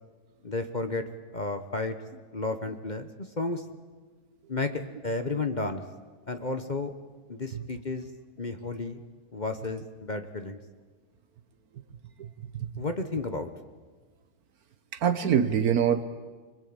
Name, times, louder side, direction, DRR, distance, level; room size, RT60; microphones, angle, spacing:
voice 1, 0.4-1.0 1.3-1.9 2.3-3.6 4.5-5.8 6.3-6.9 7.3-8.1 8.4-9.0 9.3-10.6 12.8-13.5, left 3 dB, 35° left, 8 dB, 1.1 m, -32 dB
voice 2, 12.5-12.8 14.9-16.0, right 8 dB, 75° right, 10 dB, 1.5 m, -25 dB
24.5 x 21.5 x 8.8 m, 1.4 s
omnidirectional pair, 1.6 m